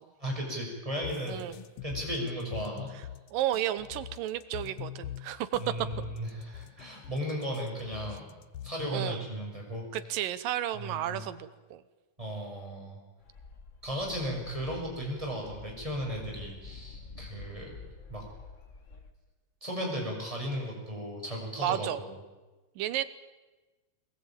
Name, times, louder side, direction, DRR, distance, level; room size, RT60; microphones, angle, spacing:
voice 1, 0.2-1.4 1.8-2.9 5.6-8.2 8.6-9.9 10.7-11.2 12.2-13.0 13.8-17.8 18.1-18.3 19.6-22.1, equal, 10° right, -2 dB, 6.7 m, -35 dB
sound 1, 1.0-9.0, left 12 dB, 85° left, 1.3 m, -43 dB
voice 2, 3.3-5.9 8.9-9.2 9.9-11.8 21.6-22.0 22.8-23.0, right 12 dB, 90° right, 14 dB, 2.8 m, -32 dB
sound 2, 13.2-19.1, left 4 dB, 40° left, 1.0 m, -48 dB
22.5 x 20.0 x 9.0 m, 1.2 s
omnidirectional pair, 3.8 m